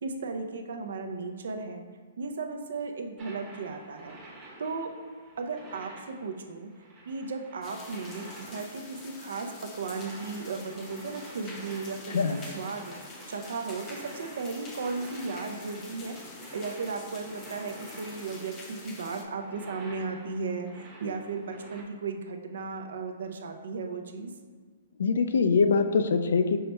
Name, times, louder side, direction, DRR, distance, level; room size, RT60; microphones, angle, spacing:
voice 1, 0.0-1.8 2.2-4.2 4.6-4.9 5.4-6.7 7.1-12.9 13.3-16.2 16.5-24.3, right 4 dB, 75° right, 5 dB, 0.5 m, -35 dB
sound 1, 3.2-21.8, right 1 dB, 20° right, 0.9 m, -49 dB
sound 2, 7.6-19.2, left 3 dB, 20° left, 0.6 m, -47 dB
voice 2, 12.1-12.4 25.0-26.6, left 5 dB, 80° left, 9 dB, 0.3 m, -23 dB
5.5 x 2.2 x 4.2 m, 1.5 s
hypercardioid pair, 150°, 0 cm